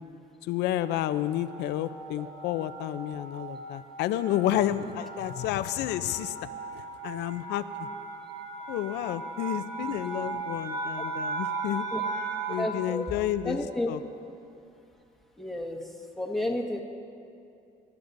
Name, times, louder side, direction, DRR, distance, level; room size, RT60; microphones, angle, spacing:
voice 1, 0.5-6.4 7.0-7.6 8.7-11.8 12.5-13.6 13.9-14.0, left 12 dB, 85° left, 12 dB, 0.6 m, -30 dB
sound 1, 0.7-12.8, right 3 dB, 80° right, 4.3 m, -37 dB
voice 2, 12.6-13.1 13.4-13.9 15.4-15.8 16.2-16.8, left 1 dB, ahead, -1 dB, 1.6 m, -31 dB
26.5 x 13.0 x 2.7 m, 2.6 s
cardioid pair, 110°, 17 cm